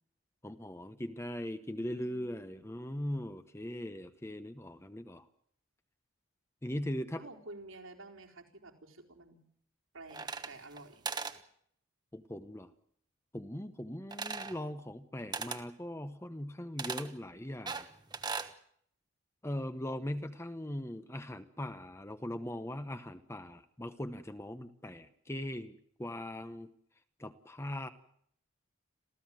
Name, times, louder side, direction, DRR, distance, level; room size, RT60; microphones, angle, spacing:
voice 1, 0.4-5.3 6.6-7.2 12.1-12.7 13.3-17.9 19.4-26.7 27.2-27.9, left 1 dB, 10° left, 10 dB, 0.9 m, -40 dB
voice 2, 1.9-2.6 7.2-9.4 9.9-11.1, right 2 dB, 80° right, 1 dB, 4.1 m, -51 dB
sound 1, 10.1-10.8 11.0-11.4 14.1-14.6 15.3-15.6 16.8-17.1 17.7-18.5, right 4 dB, 20° right, 1.2 m, -38 dB
27.5 x 15.5 x 7.7 m, 0.67 s
head